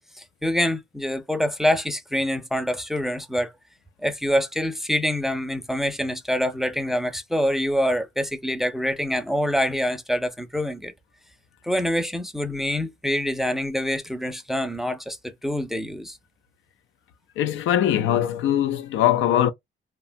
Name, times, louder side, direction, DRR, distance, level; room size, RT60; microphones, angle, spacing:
voice 1, 0.2-3.5 4.0-10.9 11.6-16.2, equal, ahead, 0.5 m, -25 dB
voice 2, 17.4-19.5, left 11 dB, 80° left, 0.4 m, -21 dB
2.7 x 2.2 x 2.5 m
cardioid pair, 90°, 20 cm